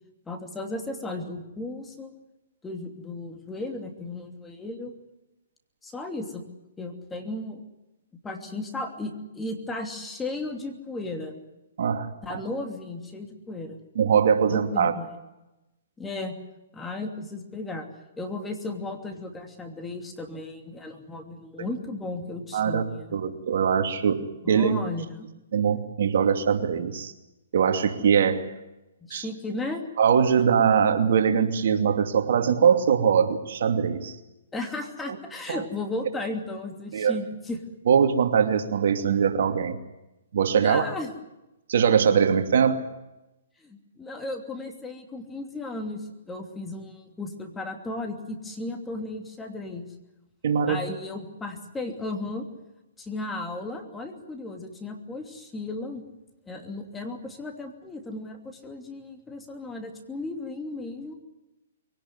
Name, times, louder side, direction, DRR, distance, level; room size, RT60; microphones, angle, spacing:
voice 1, 0.3-2.1 2.6-4.9 5.8-6.5 6.8-7.6 8.2-11.3 12.2-13.8 14.5-15.1 16.0-16.4 16.7-17.9 18.2-23.3 24.4-25.3 29.0-29.8 34.5-37.6 40.6-41.1 43.6-49.9 50.7-52.5 53.0-56.0 56.5-61.2, left 2 dB, 10° left, 4 dB, 2.8 m, -35 dB
voice 2, 11.8-12.4 14.0-14.9 22.5-22.8 23.1-24.8 25.5-27.1 27.5-28.5 29.1-29.3 30.0-34.1 35.5-35.6 36.9-37.2 37.9-39.8 40.3-40.8 41.7-42.8 50.4-50.8, right 7 dB, 65° right, 7 dB, 2.5 m, -22 dB
23.0 x 18.0 x 9.6 m, 0.97 s
hypercardioid pair, 145°, 0 cm